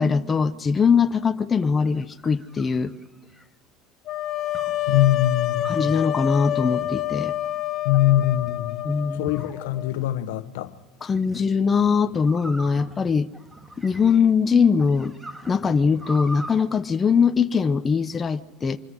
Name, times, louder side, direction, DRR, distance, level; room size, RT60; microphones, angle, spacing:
voice 1, 0.0-2.9 5.7-7.3 8.8-9.3 11.0-13.3 13.8-15.1 15.5-18.8, left 5 dB, 25° left, 0.9 m, -21 dB
sound 1, 1.8-3.5 4.5-4.9 5.6-6.0 6.8-7.3 7.9-8.6 9.3-10.0 11.1-11.4 12.2-14.3 14.8-16.6, equal, 10° right, 2.0 m, -41 dB
sound 2, 4.1-9.9, left 13 dB, 45° left, 1.0 m, -28 dB
voice 2, 4.9-5.9 7.8-10.7, left 13 dB, 90° left, 1.1 m, -23 dB
25.5 x 14.0 x 9.8 m
supercardioid pair, 120°, 0 cm